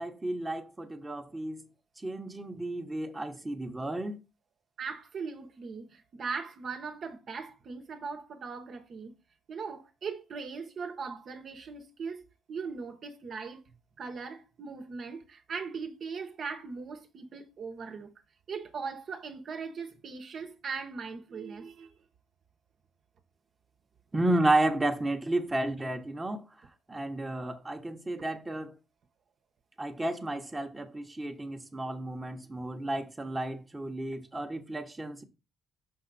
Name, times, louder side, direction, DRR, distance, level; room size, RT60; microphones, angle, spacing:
voice 1, 0.0-1.7 2.0-4.2 24.1-26.4 26.9-28.8 29.8-35.2, right 2 dB, 15° right, 1.1 m, -32 dB
voice 2, 4.8-9.2 9.5-13.6 14.0-18.1 18.5-21.9, right 5 dB, 55° right, 1.1 m, -39 dB
5.8 x 5.6 x 4.1 m
cardioid pair, 80°, 0 cm